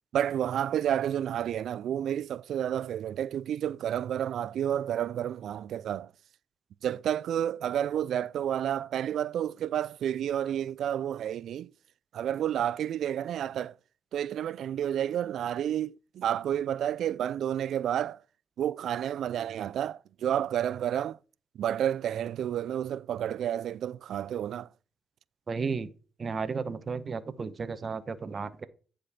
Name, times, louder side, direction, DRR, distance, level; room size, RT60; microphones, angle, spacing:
voice 1, 0.1-6.1 6.8-11.7 12.1-13.7 14.1-18.2 18.6-21.2 21.6-24.7, right 10 dB, 70° right, 0.3 m, -30 dB
voice 2, 25.5-25.9 26.2-28.7, right 5 dB, 40° right, 0.9 m, -33 dB
9.6 x 5.1 x 4.2 m
cardioid pair, 90°, 0 cm